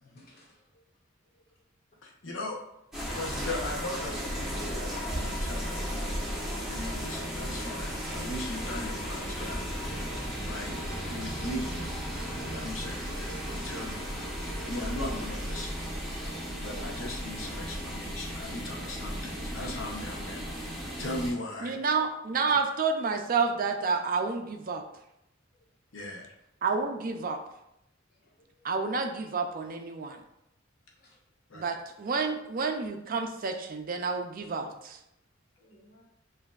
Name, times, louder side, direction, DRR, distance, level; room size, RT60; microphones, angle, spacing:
voice 1, 0.1-0.8 1.3-1.4 5.0-5.1 14.5-14.7 28.5-28.7 31.0-31.2 34.4-34.8 35.6-36.0, left 1 dB, 50° left, -5 dB, 1.6 m, -59 dB
voice 2, 2.0-2.6 3.1-5.9 6.6-9.6 10.4-10.8 11.1-11.8 12.5-14.2 14.7-15.8 16.6-20.4 21.0-21.8 25.9-26.3 31.5-31.7, left 1 dB, 70° left, 0 dB, 0.7 m, -38 dB
sound 1, 2.9-21.3, equal, ahead, 1.0 m, -35 dB
voice 3, 21.6-24.8 26.6-27.4 28.6-30.2 31.5-35.0, right 4 dB, 45° right, 5 dB, 0.4 m, -29 dB
7.2 x 2.6 x 2.4 m, 0.82 s
head